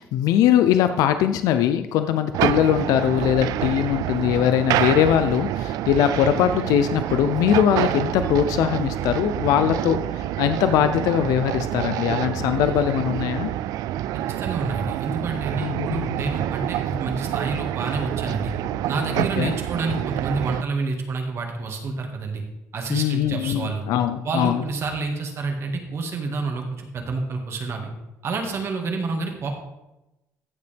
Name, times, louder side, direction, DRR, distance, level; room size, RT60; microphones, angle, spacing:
voice 1, 0.0-13.5 15.6-16.1 19.2-19.5 22.9-24.6, left 10 dB, 80° left, 9 dB, 0.5 m, -21 dB
sound 1, 2.3-20.6, right 13 dB, 75° right, 0.3 m, -27 dB
voice 2, 14.3-18.5 18.9-22.4 22.7-23.8 24.2-27.9 28.2-29.6, right 3 dB, 45° right, 3 dB, 1.9 m, -28 dB
14.5 x 6.8 x 3.5 m, 0.95 s
cardioid pair, 115°, 6 cm